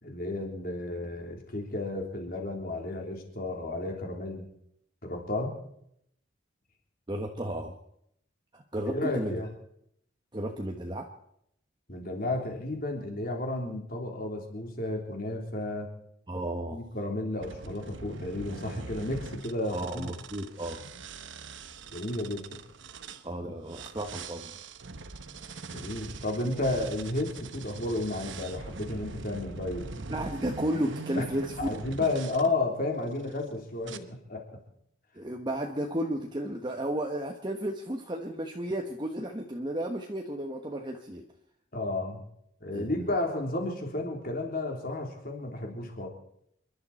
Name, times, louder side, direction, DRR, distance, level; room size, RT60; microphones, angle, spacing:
voice 1, 0.0-4.5 5.0-5.6 8.9-9.5 11.9-15.9 16.7-20.1 21.9-22.6 25.7-29.9 31.2-31.3 31.6-34.5 41.7-42.2 42.6-46.1, left 2 dB, 50° left, 1 dB, 3.5 m, -32 dB
voice 2, 7.1-7.7 8.5-9.3 10.3-11.1 16.3-16.8 19.7-20.8 23.2-24.5 29.9-31.7 35.1-41.2 42.7-43.1, right 1 dB, 25° right, 2 dB, 1.2 m, -33 dB
sound 1, 17.4-23.2 23.7-32.5 33.1-33.4 33.8-34.0, right 3 dB, 70° right, 1.0 m, -42 dB
28.5 x 12.0 x 4.3 m, 0.72 s
head